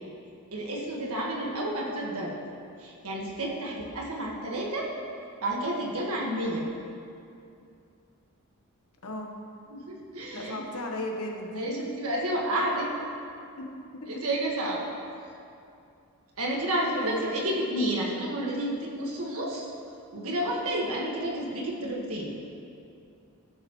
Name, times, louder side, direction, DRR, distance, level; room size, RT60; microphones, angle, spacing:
voice 1, 0.5-2.3 2.8-4.9 5.4-6.7 9.7-10.6 11.5-12.9 14.1-14.9 16.4-19.7 20.1-22.3, right 1 dB, 70° right, -2 dB, 1.7 m, -30 dB
voice 2, 9.0-9.3 10.3-11.9 13.6-14.1 16.9-17.3, left 1 dB, 70° left, 2 dB, 1.1 m, -36 dB
14.5 x 7.0 x 3.1 m, 2.5 s
head